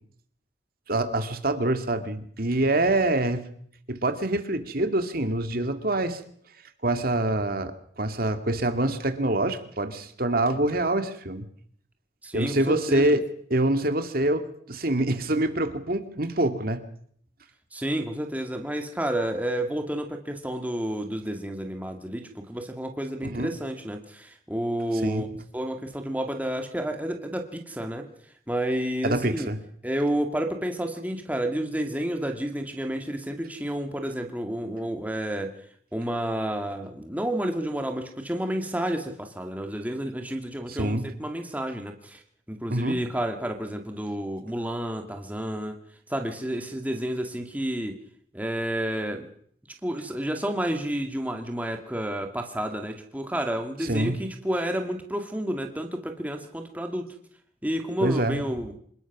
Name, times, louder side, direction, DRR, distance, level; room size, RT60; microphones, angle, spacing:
voice 1, 0.9-3.5 3.9-6.2 6.8-11.5 12.3-13.2 13.5-16.8 23.2-23.5 25.0-25.2 29.0-29.6 40.7-41.1 42.7-43.0 53.8-54.2 58.0-58.4, right 1 dB, 55° right, 8 dB, 2.2 m, -25 dB
voice 2, 12.2-13.2 17.7-25.3 25.5-28.1 28.5-29.5 29.8-35.5 35.9-42.2 42.5-45.8 46.1-48.0 48.3-49.3 49.8-57.1 57.6-58.8, right 1 dB, 10° right, 4 dB, 2.2 m, -30 dB
27.0 x 20.0 x 6.1 m, 0.63 s
head